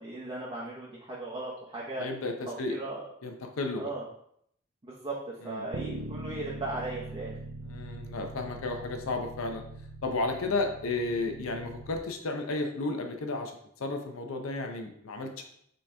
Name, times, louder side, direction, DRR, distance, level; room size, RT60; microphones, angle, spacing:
voice 1, 0.0-2.1 2.5-3.0 3.8-4.1 4.8-7.4, right 2 dB, 25° right, -5 dB, 0.7 m, -37 dB
voice 2, 2.0-2.8 3.2-3.9 5.4-5.7 7.6-9.6 10.0-13.5 13.8-15.5, left 3 dB, 80° left, 4 dB, 0.6 m, -33 dB
Bass guitar, 5.7-12.0, right 3 dB, 75° right, 0.5 m, -42 dB
5.3 x 2.9 x 3.3 m, 0.70 s
head